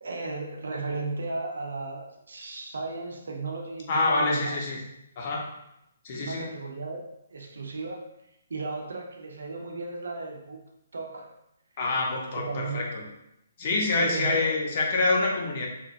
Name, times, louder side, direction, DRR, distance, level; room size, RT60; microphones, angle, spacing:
voice 1, 0.0-4.6 6.2-7.1 7.3-8.1 8.5-10.6 10.9-11.3 12.3-13.0 13.9-14.4, right 3 dB, 80° right, 1 dB, 0.5 m, -35 dB
voice 2, 3.9-4.8 5.2-5.5 6.0-6.5 11.8-13.0 13.6-15.7, left 3 dB, 45° left, -1 dB, 0.7 m, -26 dB
3.0 x 2.3 x 2.5 m, 0.83 s
hypercardioid pair, 150°, 0 cm